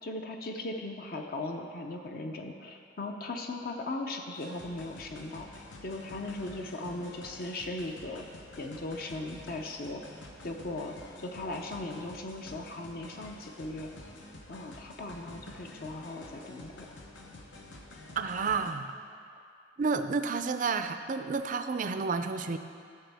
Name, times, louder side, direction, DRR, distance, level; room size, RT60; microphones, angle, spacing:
voice 1, 0.0-8.3 8.6-10.0 10.4-13.9 14.5-16.9, left 2 dB, 55° left, 3 dB, 0.6 m, -38 dB
sound 1, 4.3-18.7, left 2 dB, 90° left, 1.0 m, -49 dB
voice 2, 18.2-18.9 19.8-22.6, right 4 dB, 45° right, 9 dB, 0.4 m, -30 dB
14.0 x 6.7 x 3.5 m, 2.3 s
head